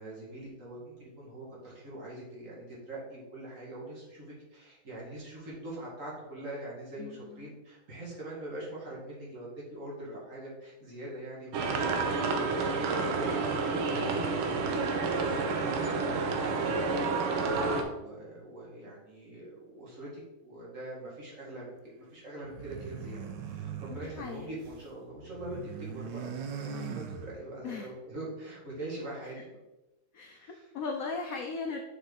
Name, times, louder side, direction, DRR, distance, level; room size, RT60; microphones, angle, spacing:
voice 1, 0.0-12.1 12.4-15.0 15.3-15.4 15.7-17.5 17.9-29.3 30.2-30.7, right 1 dB, 40° right, -5 dB, 2.1 m, -43 dB
voice 2, 7.0-7.5 23.9-24.5 27.6-27.9 30.1-31.8, left 4 dB, 75° left, 3 dB, 0.8 m, -38 dB
sound 1, 11.5-17.8, right 4 dB, 90° right, 1.6 m, -29 dB
sound 2, 22.4-24.9 25.2-27.7, right 6 dB, 70° right, 1.2 m, -41 dB
6.5 x 4.5 x 3.8 m, 1.0 s
omnidirectional pair, 2.2 m